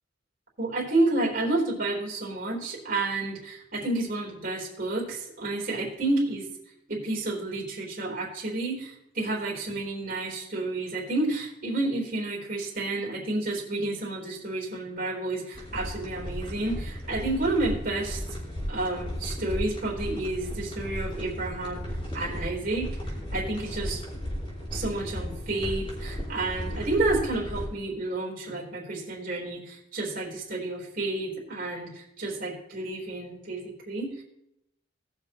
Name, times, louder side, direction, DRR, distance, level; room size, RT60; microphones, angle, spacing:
voice 1, 0.6-6.5 6.9-18.2 18.7-21.9 22.1-22.9 23.3-24.0 24.7-34.1, right 2 dB, 45° right, -3 dB, 3.9 m, -30 dB
sound 1, 15.5-27.7, equal, 30° left, 4.5 m, -35 dB
19.5 x 6.7 x 3.0 m, 0.80 s
head